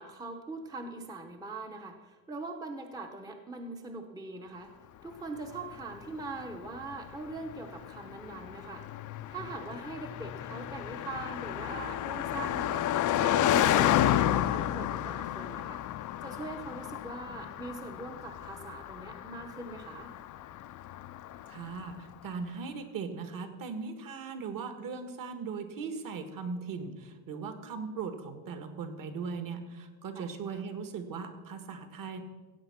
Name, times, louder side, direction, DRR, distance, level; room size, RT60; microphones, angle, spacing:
voice 1, 0.0-4.7 5.0-8.9 9.3-12.9 13.2-15.8 16.2-20.1 30.1-30.3, right 3 dB, 10° right, 4 dB, 0.7 m, -42 dB
Car passing by, 5.5-21.9, left 12 dB, 45° left, 0.5 m, -31 dB
voice 2, 21.5-32.2, right 5 dB, 45° right, 9 dB, 1.5 m, -39 dB
16.0 x 8.1 x 5.8 m, 1.3 s
cardioid pair, 150°, 46 cm